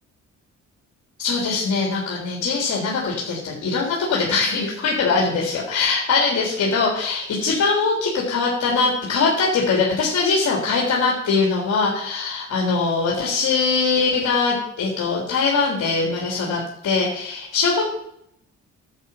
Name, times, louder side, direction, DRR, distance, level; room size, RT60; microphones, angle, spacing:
voice 1, 1.2-17.9, left 4 dB, 60° left, -2 dB, 3.5 m, -22 dB
10.5 x 8.2 x 5.8 m, 0.73 s
cardioid pair, 90°, 30 cm